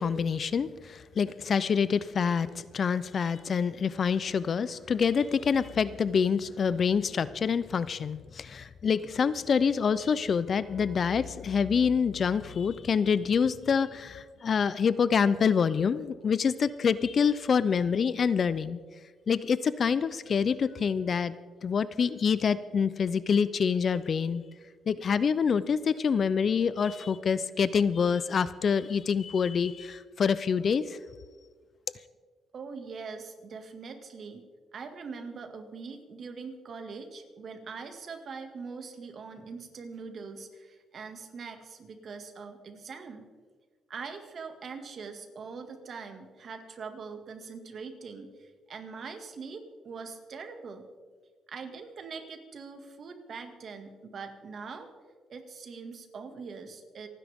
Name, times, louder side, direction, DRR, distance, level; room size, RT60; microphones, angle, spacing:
voice 1, 0.0-18.8 19.3-21.3 21.6-24.4 24.9-31.0, left 6 dB, 50° left, 16 dB, 0.5 m, -26 dB
voice 2, 32.5-34.4 34.7-43.3 43.9-50.8 51.5-54.9 55.3-57.1, right 5 dB, 55° right, 6 dB, 2.0 m, -42 dB
27.5 x 10.0 x 3.6 m, 1.5 s
cardioid pair, 90°, 0 cm